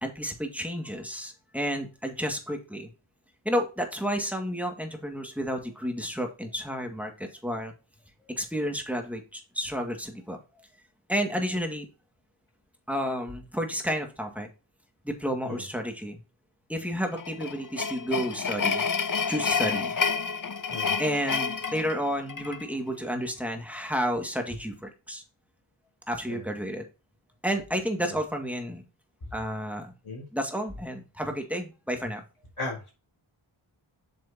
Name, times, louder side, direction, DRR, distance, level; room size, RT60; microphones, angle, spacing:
voice 1, 0.0-2.9 3.5-7.7 8.3-10.4 11.1-11.9 12.9-14.5 15.0-16.2 16.7-18.8 19.3-19.9 21.0-25.2 26.1-26.8 27.4-28.8 29.3-29.9 30.3-32.2, equal, 5° right, 3 dB, 2.0 m, -31 dB
sound 1, 17.1-22.6, left 5 dB, 40° left, 0.8 m, -29 dB
voice 2, 32.6-32.9, left 2 dB, 80° left, -2 dB, 3.8 m, -36 dB
7.9 x 6.3 x 2.9 m, 0.31 s
wide cardioid pair, 55°, 50 cm